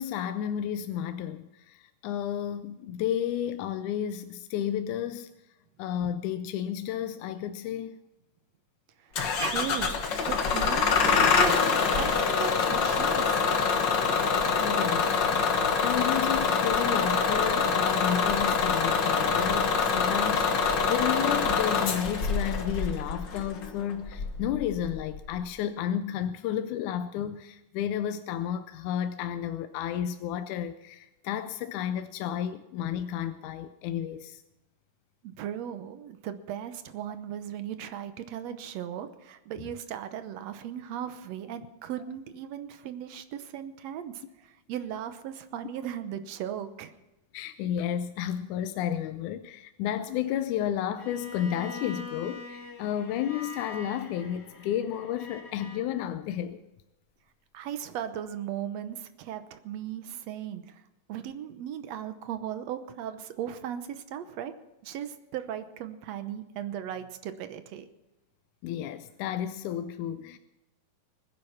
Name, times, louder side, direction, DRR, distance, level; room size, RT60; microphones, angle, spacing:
voice 1, 0.0-5.3 5.8-8.0 14.6-15.2 15.8-34.4 47.3-56.6 68.6-70.4, left 10 dB, 80° left, 1.9 m, -32 dB
Bus / Engine starting, 9.2-25.4, left 5 dB, 50° left, 1.4 m, -25 dB
voice 2, 9.4-9.9 10.2-11.6 12.0-13.4 35.2-46.9 57.5-60.8 61.1-64.5 64.8-67.9, right 9 dB, 70° right, 1.7 m, -37 dB
Bowed string instrument, 51.0-55.9, left 3 dB, 25° left, 1.5 m, -43 dB
20.5 x 9.8 x 5.8 m
omnidirectional pair, 3.9 m